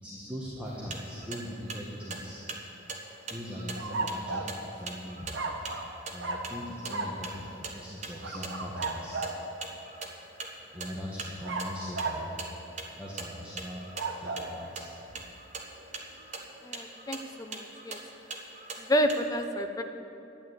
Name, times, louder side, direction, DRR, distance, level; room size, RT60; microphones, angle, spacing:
voice 1, 0.0-2.4 3.3-5.5 6.1-9.2 10.7-12.3 12.7-13.8 14.2-15.2, equal, 5° right, -5 dB, 1.4 m, -40 dB
sound 1, 0.7-19.3, right 3 dB, 40° right, 1.3 m, -43 dB
sound 2, 3.8-4.6 5.3-5.9 6.2-6.5 6.9-7.2 8.2-9.4 11.4-12.3 13.8-14.5, right 3 dB, 80° right, 1.3 m, -34 dB
voice 2, 16.6-18.0 18.8-19.8, equal, 20° left, 6 dB, 0.7 m, -29 dB
12.0 x 9.4 x 8.0 m, 2.9 s
head